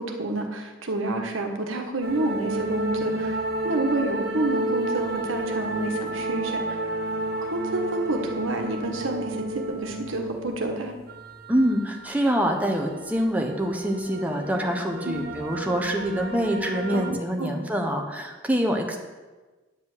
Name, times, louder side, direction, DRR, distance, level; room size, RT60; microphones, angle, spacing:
voice 1, 0.0-3.4 3.6-6.8 7.4-10.9 15.0-15.2 16.9-17.6, right 2 dB, 85° right, 4 dB, 1.3 m, -29 dB
sound 1, 2.0-17.1, right 2 dB, 50° right, 1.3 m, -32 dB
voice 2, 11.5-19.0, equal, 10° right, 2 dB, 0.9 m, -25 dB
9.7 x 5.1 x 7.7 m, 1.2 s
head